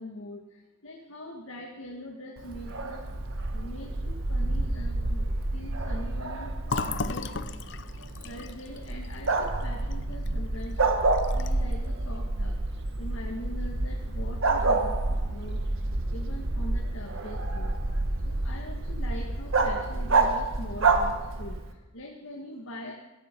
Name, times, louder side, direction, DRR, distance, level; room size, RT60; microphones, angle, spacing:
voice 1, 0.0-3.0 3.5-6.5 6.9-7.3 8.1-10.8 11.3-12.6 13.0-15.6 16.1-18.0 18.2-22.9, left 1 dB, 85° left, 0 dB, 1.8 m, -42 dB
Bark, 2.4-21.7, right 4 dB, 80° right, 1.5 m, -31 dB
Bark 2, 2.5-21.6, right 1 dB, 55° right, 1.0 m, -32 dB
Fill (with liquid), 6.7-10.3 10.7-10.8 11.1-11.7, left 4 dB, 55° left, 0.6 m, -36 dB
15.5 x 14.0 x 5.4 m, 1.1 s
head